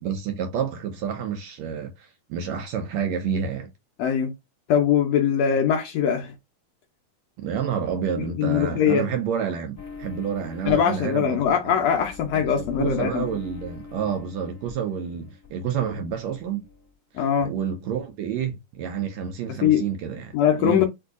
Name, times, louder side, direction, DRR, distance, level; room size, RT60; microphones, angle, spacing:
voice 1, 0.0-3.7 7.4-11.4 11.7-11.8 12.3-16.7 17.1-20.9, right 7 dB, 75° right, 1.7 m, -29 dB
voice 2, 4.0-4.3 4.7-6.3 8.2-9.0 10.7-13.3 17.2-17.5 19.6-19.8 20.3-20.9, left 8 dB, 75° left, 1.6 m, -22 dB
sound 1, 9.8-15.5 15.7-16.9, left 4 dB, 20° left, 1.1 m, -43 dB
6.5 x 2.7 x 2.4 m
omnidirectional pair, 3.6 m